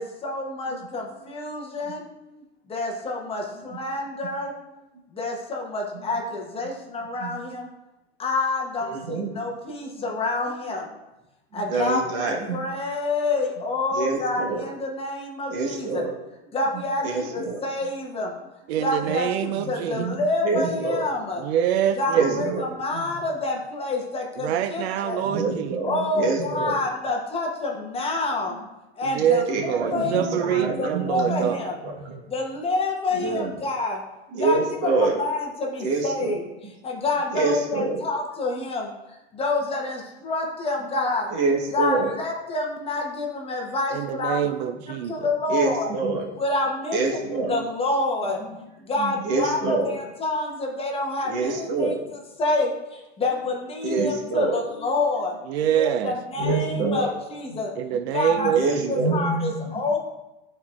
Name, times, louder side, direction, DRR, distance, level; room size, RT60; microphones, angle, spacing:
voice 1, 0.0-2.1 2.7-4.5 5.1-7.7 8.2-10.9 11.5-16.0 16.5-18.4 18.8-21.4 22.0-25.2 25.8-28.6 29.0-31.8 32.3-34.0 34.3-41.3 41.7-44.4 44.9-45.9 46.4-47.2 47.5-48.4 48.8-55.3 55.7-57.7 58.1-58.5 58.9-60.1, left 2 dB, 20° left, 0 dB, 0.9 m, -28 dB
voice 2, 8.8-9.3 11.5-12.6 13.9-14.6 15.5-16.1 16.7-17.6 19.1-19.2 19.5-19.7 20.0-20.1 20.4-21.0 22.1-22.6 22.9-23.1 25.2-26.8 29.5-31.6 31.8-32.2 33.2-33.5 34.3-35.2 35.8-36.4 37.3-38.0 41.3-42.1 45.5-46.3 46.9-47.6 49.0-49.9 51.2-52.0 53.8-54.6 56.3-57.1 58.4-59.7, right 3 dB, 55° right, 0 dB, 1.4 m, -26 dB
voice 3, 18.7-20.0 21.4-22.4 24.4-25.8 29.1-31.6 43.9-45.3 55.5-56.1 57.8-59.0, right 9 dB, 80° right, 10 dB, 0.5 m, -25 dB
12.5 x 4.4 x 2.4 m, 0.99 s
supercardioid pair, 145°, 32 cm